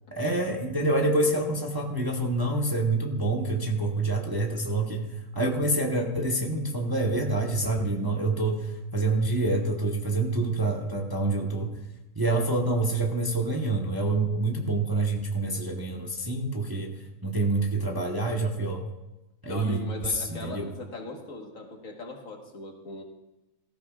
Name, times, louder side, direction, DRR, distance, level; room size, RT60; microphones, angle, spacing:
voice 1, 0.1-5.1 5.3-11.7 12.1-16.9 17.2-18.8 19.4-20.6, right 2 dB, 15° right, 0 dB, 1.0 m, -27 dB
voice 2, 19.5-23.0, left 2 dB, 60° left, 1 dB, 1.9 m, -39 dB
18.0 x 14.0 x 2.4 m, 0.98 s
omnidirectional pair, 1.6 m